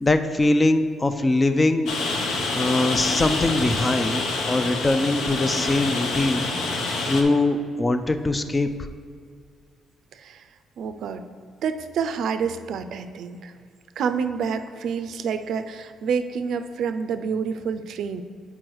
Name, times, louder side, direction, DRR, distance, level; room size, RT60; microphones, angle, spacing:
voice 1, 0.0-1.9 2.5-6.5 7.0-8.7, left 2 dB, 25° left, 9 dB, 0.4 m, -22 dB
Rain, 1.9-7.2, left 3 dB, 80° left, 0.9 m, -27 dB
voice 2, 10.1-10.4 10.8-11.2 11.6-13.5 14.0-18.2, right 6 dB, 70° right, 9 dB, 0.4 m, -28 dB
6.1 x 4.7 x 4.7 m, 2.1 s
cardioid pair, 90°, 0 cm